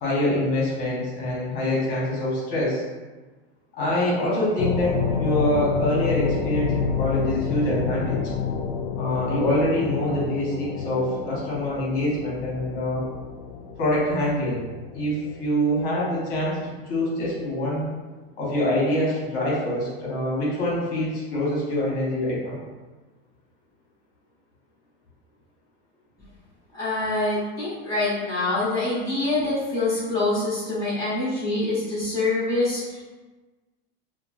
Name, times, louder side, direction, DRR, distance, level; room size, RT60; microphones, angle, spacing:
voice 1, 0.0-2.8 3.7-8.2 9.0-13.0 13.8-14.6 14.9-17.9 18.4-22.6, left 1 dB, 25° left, -5 dB, 0.9 m, -25 dB
sound 1, 4.6-16.4, left 6 dB, 80° left, 0.5 m, -29 dB
voice 2, 26.7-33.1, left 2 dB, 10° left, -10 dB, 1.2 m, -25 dB
2.9 x 2.3 x 2.4 m, 1.2 s
supercardioid pair, 170°, 32 cm